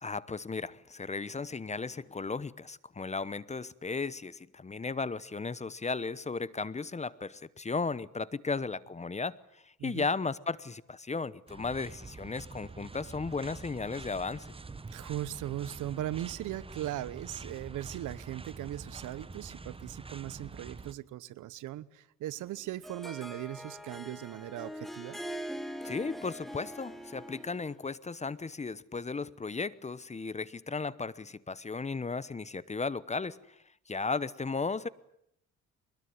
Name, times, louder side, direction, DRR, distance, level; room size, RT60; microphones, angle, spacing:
voice 1, 0.0-14.5 25.8-33.6 33.9-34.9, left 4 dB, 20° left, 0.9 m, -35 dB
sound 1, 11.5-20.9, right 3 dB, 20° right, 1.2 m, -46 dB
voice 2, 14.9-25.2, right 13 dB, 80° right, 1.0 m, -38 dB
Harp, 22.4-27.7, equal, ahead, 2.9 m, -42 dB
22.5 x 20.5 x 9.8 m
cardioid pair, 90°, 30 cm